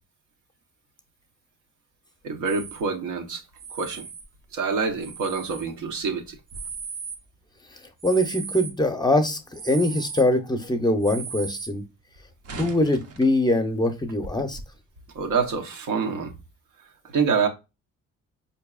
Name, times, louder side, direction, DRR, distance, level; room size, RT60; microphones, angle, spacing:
voice 1, 2.2-3.4 3.7-4.1 4.5-6.4 15.1-16.3 17.1-17.5, right 5 dB, 80° right, 0.9 m, -26 dB
sound 1, 2.5-2.8 3.6-4.3 4.9-5.7 6.3-7.2 8.0-8.7 9.5-10.3 11.0-11.7 12.2-13.4 13.9-14.0 14.2-14.6 15.2-15.5, right 5 dB, 55° right, 0.7 m, -37 dB
voice 2, 8.0-11.8 12.6-14.6, left 1 dB, 15° left, 0.6 m, -23 dB
4.5 x 2.7 x 2.2 m
cardioid pair, 90°, 30 cm